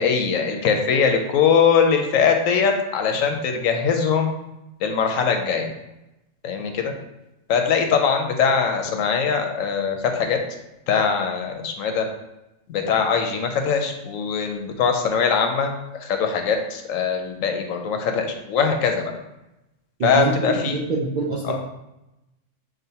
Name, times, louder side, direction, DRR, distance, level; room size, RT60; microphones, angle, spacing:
voice 1, 0.0-4.3 4.8-5.7 6.4-6.9 7.5-10.4 10.9-12.1 12.7-19.1 20.0-20.9 21.5-21.6, left 6 dB, 90° left, 4 dB, 1.0 m, -21 dB
voice 2, 20.0-21.6, right 3 dB, 70° right, -3 dB, 0.4 m, -25 dB
6.2 x 2.1 x 2.7 m, 0.93 s
omnidirectional pair, 1.3 m